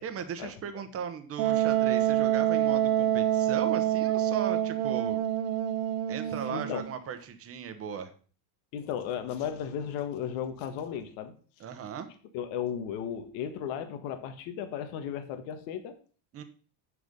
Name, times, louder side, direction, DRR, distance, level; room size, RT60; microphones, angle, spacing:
voice 1, 0.0-5.2 6.1-8.1 11.6-12.1 16.3-16.4, right 7 dB, 30° right, 9 dB, 1.0 m, -37 dB
Wind instrument woodwind instrument, 1.4-6.9, right 11 dB, 90° right, 1.0 m, -26 dB
voice 2, 6.5-6.8 8.7-11.3 12.3-15.9, left 8 dB, 70° left, 9 dB, 1.6 m, -35 dB
8.7 x 6.6 x 5.2 m, 0.41 s
cardioid pair, 165°, 47 cm